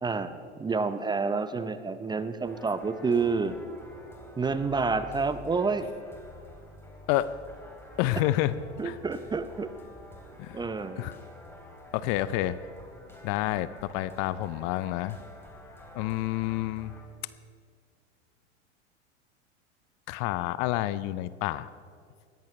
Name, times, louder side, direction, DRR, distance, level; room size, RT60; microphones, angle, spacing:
voice 1, 0.0-3.6 4.4-5.9 8.2-8.3 8.8-9.7 10.5-11.1, right 4 dB, 10° right, 11 dB, 0.6 m, -29 dB
sound 1, 2.5-17.0, left 1 dB, 5° left, 3.1 m, -49 dB
voice 2, 8.0-8.5 8.8-9.0 10.4-10.6 11.0-11.2 11.9-12.6 13.2-15.2 15.9-16.9 20.1-21.7, left 15 dB, 45° left, 16 dB, 0.6 m, -29 dB
21.5 x 16.0 x 3.2 m, 2.1 s
hypercardioid pair, 90°, 35 cm